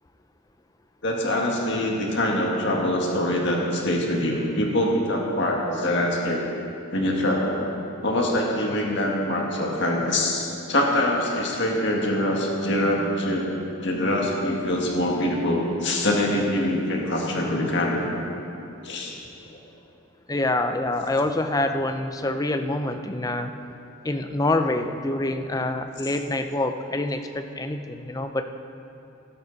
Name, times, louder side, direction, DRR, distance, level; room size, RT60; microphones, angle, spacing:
voice 1, 1.0-6.4 6.9-7.6 8.0-13.5 13.8-18.1 18.8-19.1 19.5-19.6, left 1 dB, 55° left, -1 dB, 1.8 m, -24 dB
voice 2, 20.3-23.5 24.0-28.4, left 2 dB, 15° left, 7 dB, 0.5 m, -26 dB
18.5 x 11.0 x 4.0 m, 2.8 s
head